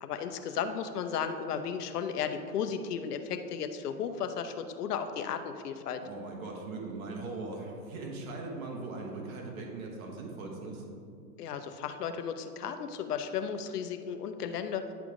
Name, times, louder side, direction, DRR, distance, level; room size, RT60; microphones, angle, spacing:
voice 1, 0.0-6.0 11.4-14.9, left 7 dB, 75° left, 8 dB, 0.8 m, -34 dB
voice 2, 6.0-10.8, right 3 dB, 60° right, -1 dB, 1.5 m, -40 dB
10.5 x 3.5 x 4.8 m, 2.3 s
hypercardioid pair, 145°, 46 cm